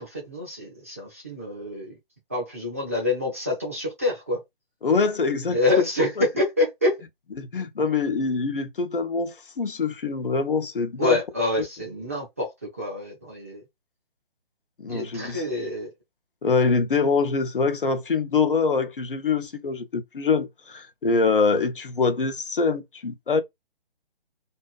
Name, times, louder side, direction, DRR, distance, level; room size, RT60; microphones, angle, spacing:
voice 1, 0.0-2.0 2.3-4.4 5.5-6.1 6.4-7.0 11.0-12.5 12.8-13.6 14.9-15.9, left 2 dB, 15° right, 0.4 m, -26 dB
voice 2, 4.8-5.6 7.4-11.2 14.8-15.4 16.4-23.4, left 4 dB, 65° left, 0.7 m, -24 dB
2.5 x 2.2 x 2.4 m
figure-of-eight pair, 140°, 29 cm